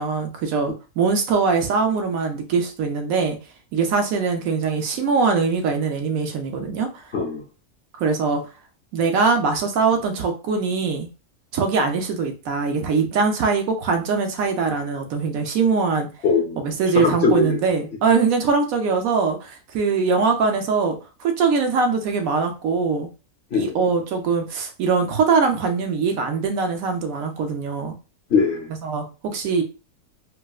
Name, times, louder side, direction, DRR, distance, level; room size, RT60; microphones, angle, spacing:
voice 1, 0.0-3.4 3.7-7.1 8.0-8.4 8.9-11.1 11.5-16.1 16.6-23.1 23.5-27.9 28.8-29.6, right 4 dB, 70° right, 5 dB, 1.0 m, -22 dB
voice 2, 7.1-7.4 16.2-17.6 23.5-23.8 28.3-28.7, left 4 dB, 55° left, 1 dB, 0.9 m, -21 dB
4.6 x 2.0 x 2.3 m, 0.32 s
omnidirectional pair, 1.6 m